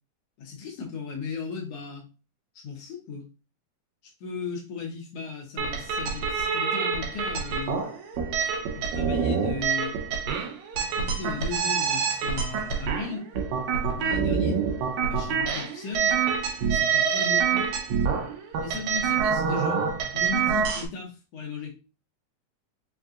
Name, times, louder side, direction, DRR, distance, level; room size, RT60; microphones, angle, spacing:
voice 1, 0.4-2.0 2.5-3.2 4.0-7.8 8.7-9.9 10.8-13.3 14.0-14.6 15.1-16.2 16.7-17.7 18.6-19.8 20.1-21.8, left 5 dB, 75° left, -1 dB, 1.5 m, -36 dB
sound 1, 5.6-20.9, right 6 dB, 90° right, 2.5 m, -26 dB
5.7 x 2.6 x 2.3 m, 0.30 s
omnidirectional pair, 3.9 m